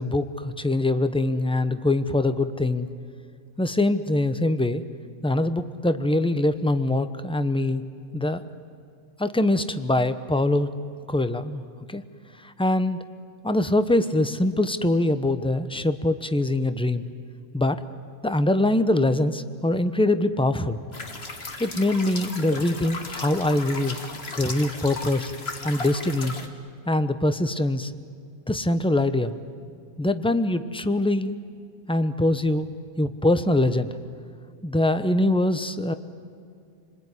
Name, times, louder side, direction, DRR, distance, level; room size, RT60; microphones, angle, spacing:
voice 1, 0.0-2.9 3.6-4.8 5.2-7.8 8.1-8.4 9.2-10.7 11.1-11.6 11.9-12.0 12.4-13.0 13.4-17.0 17.5-17.8 18.2-20.8 21.6-24.0 24.4-25.3 25.6-26.3 26.9-27.9 28.5-29.3 30.0-31.4 31.9-32.7 33.0-33.9 34.6-35.9, left 1 dB, 5° left, 11 dB, 0.6 m, -23 dB
sound 1, 20.9-26.5, left 3 dB, 45° left, 2.0 m, -36 dB
29.0 x 21.0 x 9.8 m, 2.3 s
omnidirectional pair, 1.5 m